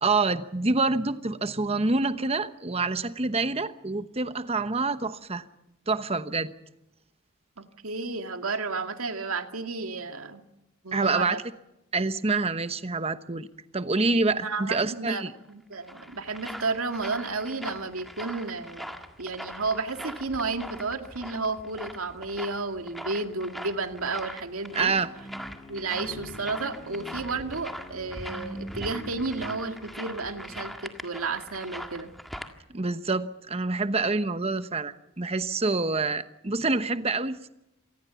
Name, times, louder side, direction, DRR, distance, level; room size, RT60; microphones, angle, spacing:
voice 1, 0.0-5.4 5.9-6.5 10.9-11.4 11.9-13.5 13.7-15.3 24.7-25.1 32.7-37.5, right 3 dB, 30° right, 11 dB, 1.0 m, -27 dB
voice 2, 7.6-10.4 10.8-11.4 14.4-24.9 25.7-32.1, right 3 dB, 85° right, 6 dB, 2.1 m, -32 dB
sound 1, 15.5-32.5, equal, ahead, 1.8 m, -41 dB
sound 2, 24.8-30.6, equal, 15° left, 4.3 m, -44 dB
26.5 x 19.5 x 7.0 m, 0.90 s
head